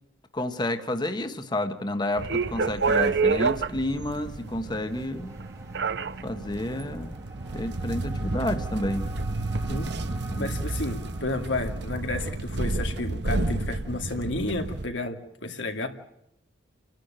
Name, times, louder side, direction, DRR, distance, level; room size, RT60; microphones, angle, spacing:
voice 1, 0.3-5.3 6.2-7.2 7.5-9.1 10.3-10.5, left 1 dB, 25° left, 7 dB, 1.2 m, -30 dB
sound 1, 2.2-14.8, right 3 dB, 65° right, 1.0 m, -30 dB
sound 2, 4.1-12.4, right 2 dB, 15° right, 1.6 m, -46 dB
voice 2, 10.4-15.9, left 2 dB, 90° left, 5 dB, 2.5 m, -31 dB
29.5 x 11.5 x 8.9 m, 0.81 s
head